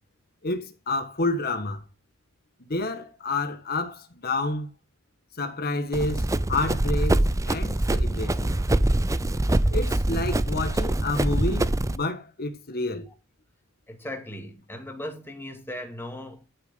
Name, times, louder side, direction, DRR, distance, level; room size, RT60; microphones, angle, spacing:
voice 1, 0.4-1.8 2.6-4.7 5.4-7.2 7.5-8.6 9.7-13.1, left 2 dB, 45° left, 1.5 m, -29 dB
Run, 5.9-12.0, right 1 dB, 15° right, 0.5 m, -24 dB
voice 2, 13.9-16.5, left 1 dB, 10° left, 2.2 m, -37 dB
13.0 x 6.5 x 3.8 m
head